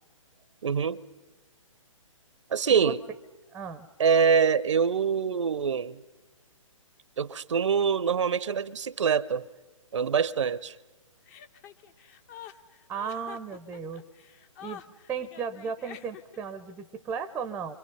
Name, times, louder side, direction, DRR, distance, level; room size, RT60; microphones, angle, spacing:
voice 1, 0.6-1.0 2.5-3.0 4.0-6.0 7.2-9.4 9.9-10.8, right 6 dB, 60° right, 0.7 m, -25 dB
voice 2, 3.5-3.9 12.9-14.0 14.6-14.8 15.1-17.8, right 6 dB, 10° right, 0.7 m, -35 dB
Chuckle chortle, 11.3-16.5, left 10 dB, 30° left, 0.9 m, -46 dB
29.0 x 25.0 x 5.5 m
figure-of-eight pair, 130°, 17 cm